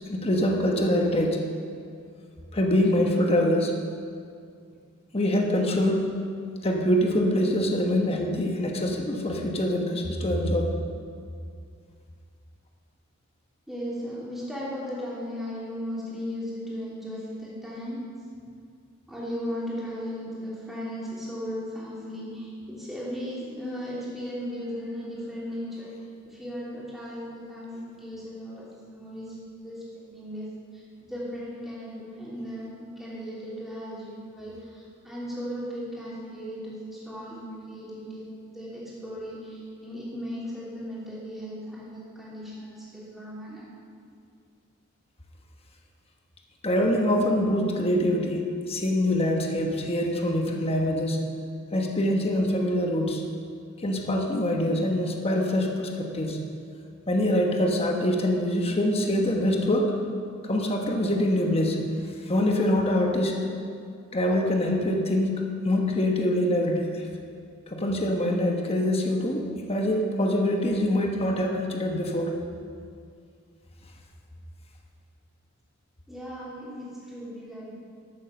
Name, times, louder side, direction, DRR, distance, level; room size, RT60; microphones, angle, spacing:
voice 1, 0.1-1.4 2.5-3.7 5.1-6.1 6.6-10.7 46.6-51.2 51.7-53.2 53.8-56.4 57.1-59.9 60.4-61.8 62.2-63.5 64.1-67.1 67.7-72.3, left 1 dB, 30° left, 1 dB, 1.1 m, -24 dB
voice 2, 13.7-18.0 19.1-25.9 26.2-29.4 29.6-30.5 31.0-43.6 76.1-77.7, equal, ahead, -8 dB, 3.4 m, -36 dB
12.0 x 8.2 x 7.0 m, 2.3 s
head